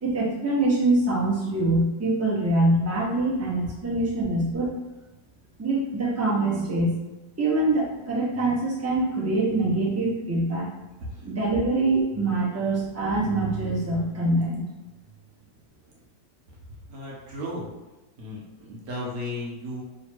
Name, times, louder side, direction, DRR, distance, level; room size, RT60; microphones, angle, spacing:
voice 1, 0.0-4.8 5.6-6.9 7.4-10.7 11.2-14.6, right 2 dB, 20° right, -4 dB, 0.4 m, -24 dB
voice 2, 16.9-17.7 18.2-19.8, left 1 dB, 60° right, -4 dB, 1.3 m, -35 dB
3.3 x 2.7 x 4.4 m, 1.1 s
omnidirectional pair, 1.9 m